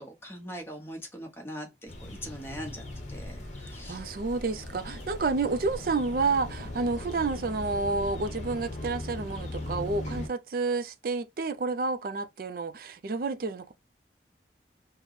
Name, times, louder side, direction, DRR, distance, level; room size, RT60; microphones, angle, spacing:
voice 1, 0.0-4.0, equal, 15° left, 0.8 m, -42 dB
sound 1, 1.9-10.3, left 1 dB, 40° left, 0.9 m, -39 dB
voice 2, 3.9-13.7, right 3 dB, 50° right, 0.4 m, -30 dB
4.2 x 2.0 x 3.1 m
head